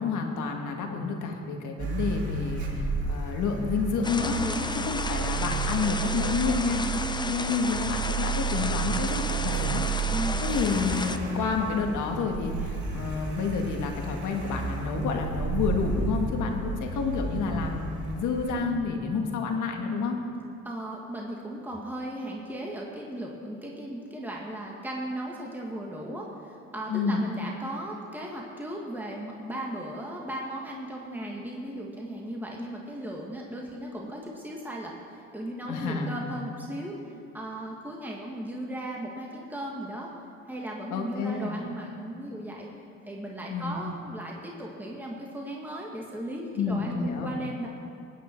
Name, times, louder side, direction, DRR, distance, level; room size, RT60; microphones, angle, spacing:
voice 1, 0.0-4.4 4.9-6.8 7.3-9.9 10.4-20.2 26.9-27.2 35.7-36.2 40.9-41.6 43.5-43.8 46.6-47.3, left 5 dB, 80° left, 3 dB, 1.7 m, -29 dB
Car, 1.8-18.7, right 5 dB, 75° right, 2.2 m, -32 dB
sound 1, 4.0-11.2, left 3 dB, 15° left, 0.6 m, -33 dB
voice 2, 4.3-4.9 7.0-7.3 10.1-10.4 20.6-36.9 37.3-40.1 40.5-42.7 43.1-47.7, right 1 dB, 5° right, -2 dB, 1.6 m, -36 dB
18.0 x 9.3 x 4.5 m, 2.6 s
cardioid pair, 90°, 30 cm